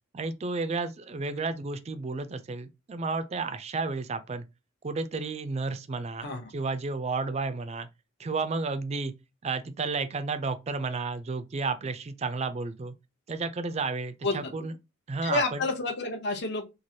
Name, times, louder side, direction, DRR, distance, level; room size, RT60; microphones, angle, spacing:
voice 1, 0.1-4.5 4.8-7.9 8.2-9.1 9.4-12.9 13.3-14.7 15.1-15.6, right 4 dB, 30° right, 0.4 m, -32 dB
voice 2, 15.2-16.6, left 3 dB, 55° left, 0.7 m, -29 dB
3.1 x 2.4 x 2.7 m
head